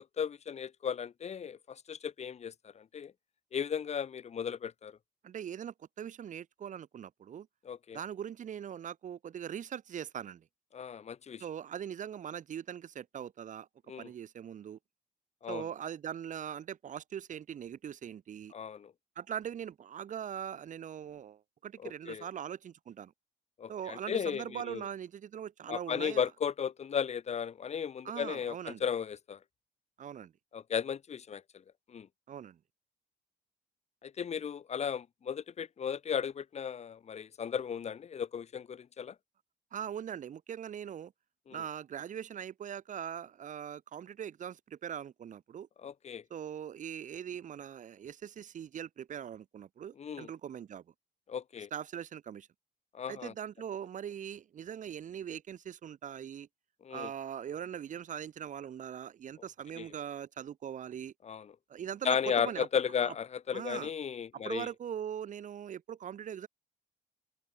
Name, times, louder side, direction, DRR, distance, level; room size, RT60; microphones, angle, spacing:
voice 1, 0.2-3.1 3.5-5.0 7.6-8.0 10.7-11.4 13.9-14.1 15.4-15.7 18.5-18.9 21.8-22.2 23.6-24.8 25.7-29.4 30.5-31.4 31.9-32.1 34.0-39.1 41.5-41.6 45.8-46.2 50.0-50.3 51.3-51.7 52.9-53.3 56.8-57.1 59.8-59.9 61.2-61.5 62.0-64.7, left 7 dB, 40° left, 0.8 m, -35 dB
voice 2, 5.2-7.5 7.9-10.4 11.4-13.7 14.0-14.8 15.5-18.5 19.2-23.1 23.7-26.3 28.0-28.8 30.0-30.3 32.3-32.6 39.7-41.1 41.5-45.7 46.3-50.8 51.7-52.5 53.1-56.5 56.9-61.1 61.7-62.7 63.0-63.1 63.5-63.9 64.4-66.5, right 9 dB, 45° right, 0.7 m, -41 dB
open air
cardioid pair, 120°, 18 cm